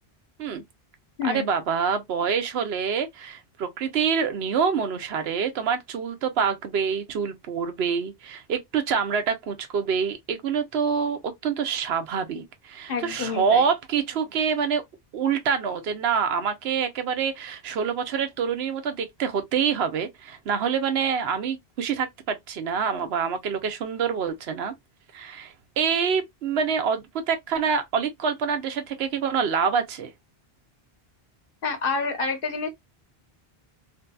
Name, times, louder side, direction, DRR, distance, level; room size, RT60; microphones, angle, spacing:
voice 1, 1.2-14.8 15.1-24.7 25.1-30.1, right 6 dB, 80° right, 0.9 m, -26 dB
voice 2, 12.9-13.6 31.6-32.7, left 4 dB, 60° left, 1.0 m, -28 dB
2.7 x 2.6 x 2.2 m
omnidirectional pair, 1.0 m